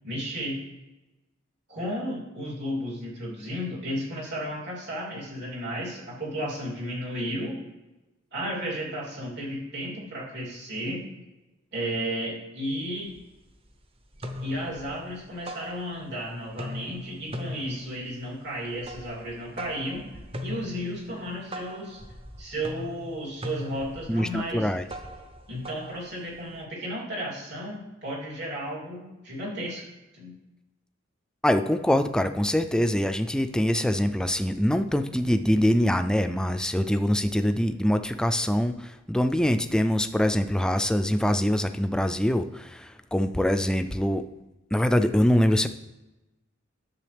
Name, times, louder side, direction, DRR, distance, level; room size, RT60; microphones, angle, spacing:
voice 1, 0.0-0.6 1.7-7.6 8.3-11.0 11.7-13.1 14.4-20.0 20.4-22.0 22.4-24.7 25.5-29.8 30.1-30.3, equal, 55° right, -5 dB, 2.9 m, -33 dB
sound 1, 12.7-12.8 13.1-13.7 14.0-16.2 16.5-26.6, left 1 dB, 30° right, 0.7 m, -40 dB
voice 2, 24.1-24.8 31.4-44.3 44.7-45.7, equal, 5° left, 8 dB, 0.3 m, -24 dB
10.5 x 7.0 x 3.4 m, 1.1 s
head